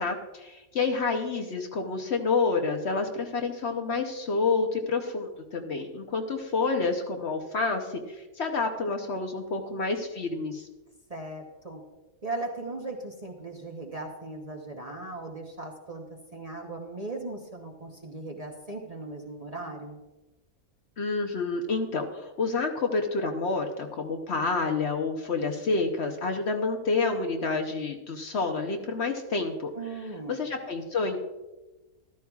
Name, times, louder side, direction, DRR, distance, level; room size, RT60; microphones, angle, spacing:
voice 1, 0.0-10.7 21.0-29.7 30.3-31.2, left 4 dB, 55° left, 4 dB, 1.0 m, -29 dB
voice 2, 11.1-11.8 12.2-16.0 16.3-20.0 29.7-30.4, right 2 dB, 30° right, 1 dB, 0.9 m, -38 dB
14.0 x 12.0 x 2.4 m, 1.1 s
omnidirectional pair, 1.5 m